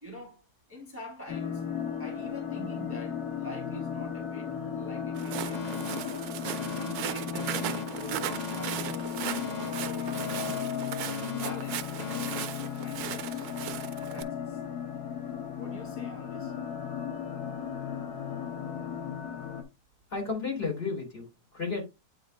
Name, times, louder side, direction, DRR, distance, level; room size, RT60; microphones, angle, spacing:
voice 1, 0.0-0.4 0.7-1.6 2.0-6.1 6.8-10.5 10.9-11.1 11.4-13.8 14.1-14.6 15.6-16.5, equal, 10° right, 1.4 m, -46 dB
sound 1, 1.3-19.6, left 8 dB, 75° left, 1.7 m, -35 dB
Walk footsteps, 5.2-14.2, right 11 dB, 75° right, 1.1 m, -37 dB
Alarm, 5.5-13.5, left 4 dB, 55° left, 0.4 m, -41 dB
voice 2, 20.1-21.8, left 4 dB, 40° left, 3.3 m, -33 dB
8.5 x 3.6 x 3.2 m
omnidirectional pair, 1.7 m